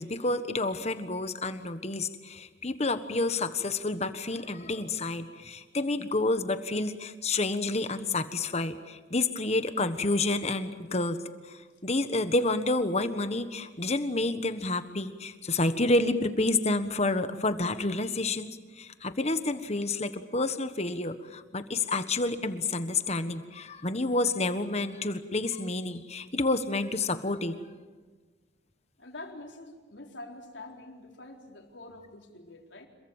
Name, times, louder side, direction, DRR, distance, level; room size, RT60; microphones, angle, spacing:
voice 1, 0.0-27.5, left 2 dB, 35° left, 10 dB, 1.4 m, -29 dB
voice 2, 29.0-32.9, left 2 dB, 75° left, 2 dB, 4.2 m, -46 dB
27.5 x 22.5 x 7.3 m, 1.4 s
head